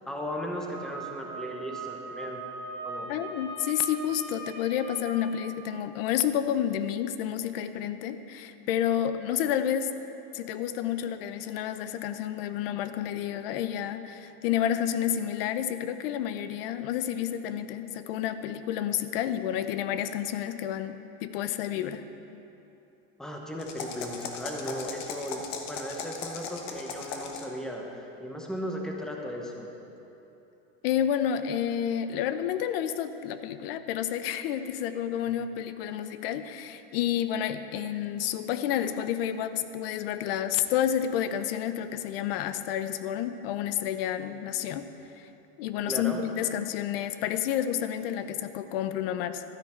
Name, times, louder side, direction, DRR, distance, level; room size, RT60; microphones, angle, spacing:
voice 1, 0.1-2.4 2.8-3.1 23.2-29.7 44.2-44.4 45.8-46.2, equal, ahead, 0 dB, 0.8 m, -36 dB
Wind instrument woodwind instrument, 0.7-5.5, right 3 dB, 45° right, 2.0 m, -40 dB
voice 2, 3.1-9.9 10.3-22.0 30.8-44.9 45.2-45.3 45.6-49.4, left 10 dB, 65° left, 11 dB, 0.7 m, -30 dB
sound 1, 23.6-27.6, left 5 dB, 50° left, 1.1 m, -38 dB
12.5 x 9.8 x 4.4 m, 3.0 s
supercardioid pair, 165°, 31 cm